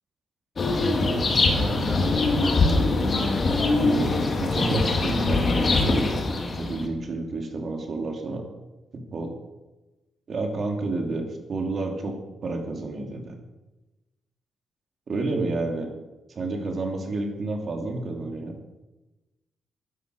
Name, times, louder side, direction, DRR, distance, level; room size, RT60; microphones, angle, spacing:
sound 1, 0.6-6.9, left 3 dB, 40° left, 2.3 m, -23 dB
voice 1, 2.7-4.1 4.4-6.0 6.6-8.4 8.9-9.3 10.3-11.2 11.5-13.4 15.1-15.9 16.3-18.6, right 3 dB, 50° right, 3 dB, 2.9 m, -30 dB
11.5 x 11.0 x 6.6 m, 1.1 s
cardioid pair, 100°, 0 cm